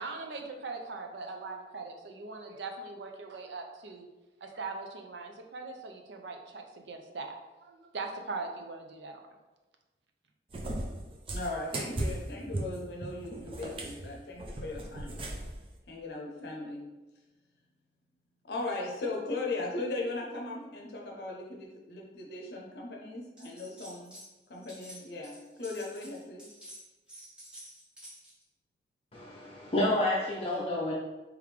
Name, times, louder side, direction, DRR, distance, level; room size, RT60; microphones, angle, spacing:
voice 1, 0.0-4.1 4.4-7.4 7.6-9.2, right 3 dB, 90° right, 3 dB, 0.6 m, -40 dB
Cat, 10.5-15.6, right 1 dB, 30° right, 0.4 m, -37 dB
voice 2, 11.3-15.2 15.9-16.8 18.4-24.2 24.5-26.5, left 2 dB, 70° left, -1 dB, 0.6 m, -38 dB
sound 1, 23.4-24.3 24.5-28.4, equal, 5° right, 1.3 m, -50 dB
voice 3, 29.1-30.9, left 1 dB, 35° left, -5 dB, 0.6 m, -29 dB
3.5 x 3.5 x 3.2 m, 1.1 s
head